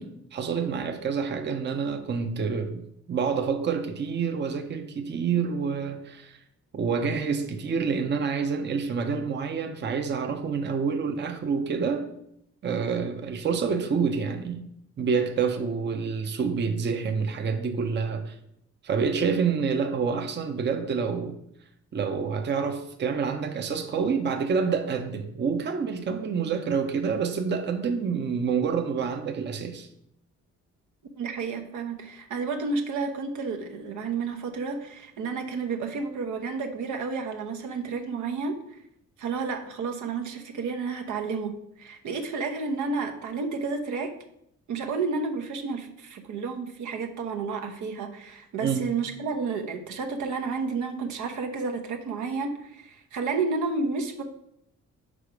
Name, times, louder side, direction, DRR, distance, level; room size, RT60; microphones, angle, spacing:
voice 1, 0.0-6.4 6.7-12.1 12.6-14.6 15.0-18.4 18.8-21.4 21.9-29.9 48.6-48.8, right 5 dB, 35° right, 0.7 m, -28 dB
voice 2, 31.2-38.8 39.2-44.1 44.7-54.2, right 4 dB, 75° right, 0.9 m, -31 dB
4.9 x 4.7 x 5.0 m
cardioid pair, 90°, 30 cm